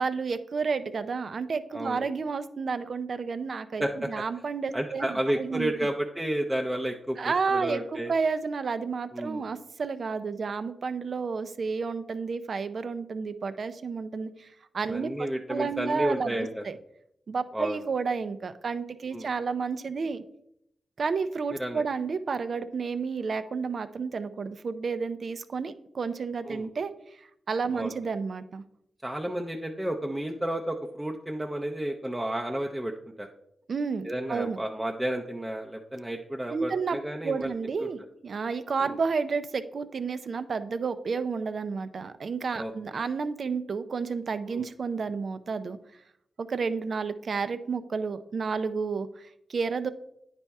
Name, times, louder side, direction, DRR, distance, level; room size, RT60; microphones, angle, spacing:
voice 1, 0.0-5.7 7.2-14.5 14.7-16.8 17.3-20.2 21.0-28.6 33.7-34.6 36.5-45.8 46.4-49.9, right 5 dB, 60° right, 12 dB, 0.5 m, -31 dB
voice 2, 1.7-2.1 3.8-4.2 4.7-7.2 7.5-8.1 9.1-9.4 14.9-16.6 17.5-17.8 19.1-19.3 21.6-21.8 26.5-26.7 27.7-27.9 29.0-32.9 33.2-33.3 34.0-37.5 37.8-37.9 42.6-42.7 44.5-44.7, right 1 dB, 10° right, 1 dB, 0.6 m, -31 dB
9.7 x 4.2 x 3.5 m, 0.76 s
cardioid pair, 75°, 0 cm